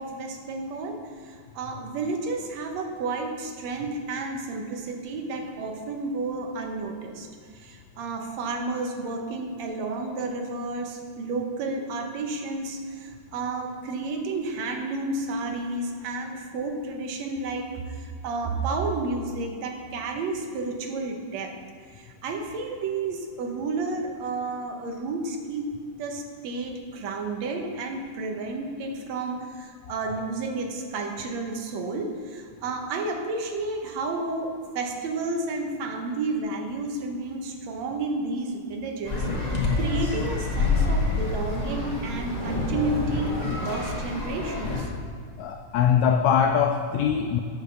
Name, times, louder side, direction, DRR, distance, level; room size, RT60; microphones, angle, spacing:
voice 1, 0.0-7.3 7.5-21.5 21.8-44.9, right 3 dB, 65° right, 3 dB, 2.2 m, -31 dB
sound 1, 39.1-44.8, left 3 dB, 60° left, 0.4 m, -27 dB
voice 2, 45.4-47.4, left 8 dB, 80° left, 6 dB, 1.6 m, -22 dB
8.7 x 6.5 x 6.8 m, 2.1 s
omnidirectional pair, 3.6 m